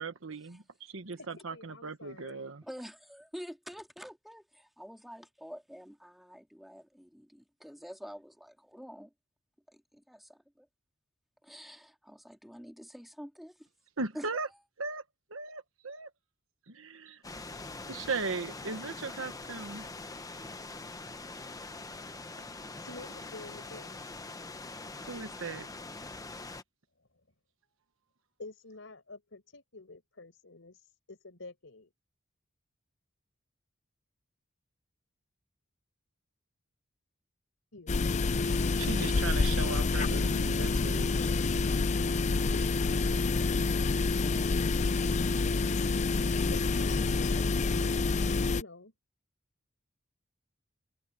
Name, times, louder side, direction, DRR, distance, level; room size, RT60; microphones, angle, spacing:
voice 1, 0.0-2.6 14.0-14.5 14.8-15.0 15.3-16.1 16.7-17.2 17.9-19.9 25.1-25.7 38.8-41.1, right 4 dB, 85° right, 1.3 m, -37 dB
voice 2, 1.4-2.4 22.8-24.1 28.4-31.9 37.7-38.1 46.5-48.1 48.5-48.9, left 3 dB, 70° left, 4.8 m, -49 dB
voice 3, 2.6-9.1 9.7-10.7 11.4-13.7 14.1-14.6, equal, ahead, 2.1 m, -47 dB
sound 1, 17.2-26.6, left 3 dB, 20° left, 1.0 m, -43 dB
sound 2, 37.9-48.6, left 3 dB, 35° left, 0.4 m, -28 dB
head